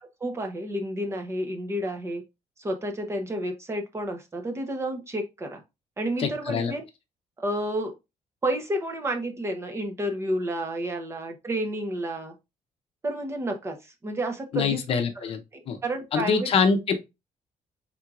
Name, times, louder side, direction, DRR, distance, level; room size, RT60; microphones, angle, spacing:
voice 1, 0.2-2.2 2.6-5.6 6.0-6.8 7.4-7.9 8.4-12.3 13.0-14.8 15.5-16.5, right 1 dB, 20° right, 0.8 m, -30 dB
voice 2, 6.2-6.7 14.5-15.4 15.7-15.8 16.1-17.0, left 5 dB, 50° left, 0.7 m, -24 dB
4.4 x 3.7 x 2.4 m
cardioid pair, 155°, 12 cm